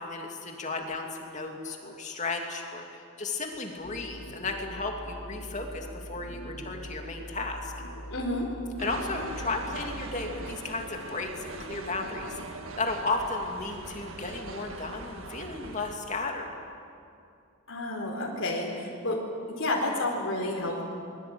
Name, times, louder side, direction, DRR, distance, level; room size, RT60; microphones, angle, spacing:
voice 1, 0.0-7.7 8.8-16.5, left 3 dB, 35° left, 2 dB, 2.8 m, -34 dB
sound 1, 3.8-10.5, equal, 80° left, 2.8 m, -43 dB
voice 2, 8.1-8.5 17.7-19.2 19.6-20.8, left 2 dB, 60° left, -2 dB, 4.4 m, -30 dB
sound 2, 8.8-16.0, right 2 dB, 65° right, 1.8 m, -41 dB
26.0 x 22.0 x 8.9 m, 2.5 s
head